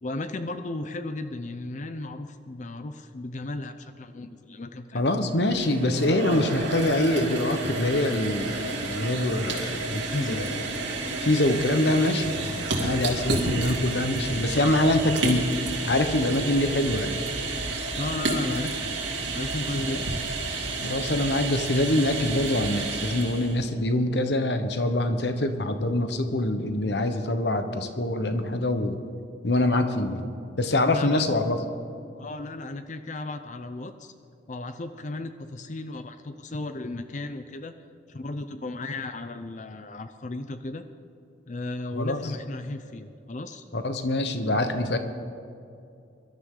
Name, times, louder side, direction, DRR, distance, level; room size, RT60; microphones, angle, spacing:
voice 1, 0.0-5.0 10.0-10.4 17.9-18.9 19.3-20.0 30.8-31.3 32.1-34.1 34.5-37.7 38.1-40.8 41.5-43.7, left 2 dB, 40° left, 9 dB, 0.5 m, -35 dB
voice 2, 4.9-10.0 10.3-10.6 11.2-15.5 15.8-17.2 19.9-20.0 20.8-29.0 29.4-30.3 30.6-31.6 41.9-42.2 43.7-45.0, left 1 dB, 65° left, 8 dB, 1.1 m, -25 dB
sound 1, 5.3-23.6, right 2 dB, 90° right, 2.7 m, -30 dB
23.0 x 12.5 x 3.9 m, 2.5 s
head